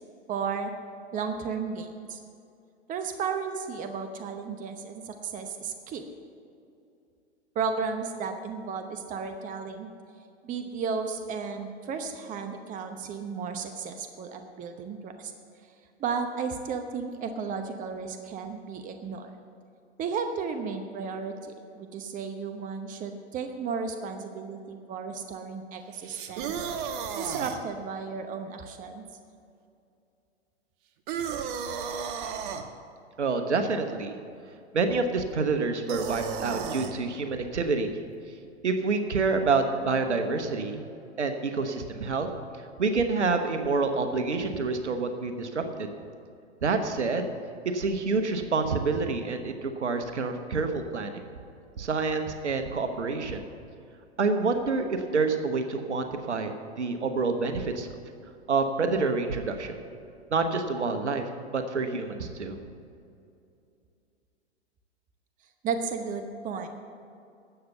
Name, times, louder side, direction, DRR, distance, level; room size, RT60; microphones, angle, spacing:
voice 1, 0.3-0.7 1.1-2.2 2.9-6.0 7.5-9.9 10.4-15.3 16.0-19.3 20.0-26.5 27.2-29.0 65.6-66.7, right 5 dB, 25° right, 7 dB, 0.9 m, -34 dB
sound 1, 26.0-27.6 31.1-32.6 35.9-36.9, right 7 dB, 50° right, 1.2 m, -33 dB
voice 2, 33.2-34.1 34.7-37.9 38.6-40.8 41.2-42.3 42.8-45.9 46.6-47.3 47.7-51.2 51.8-53.4 54.2-57.9 58.5-59.7 60.3-61.2 61.5-62.6, right 4 dB, 90° right, 7 dB, 1.2 m, -27 dB
12.5 x 8.3 x 6.8 m, 2.6 s
hypercardioid pair, 110°, 34 cm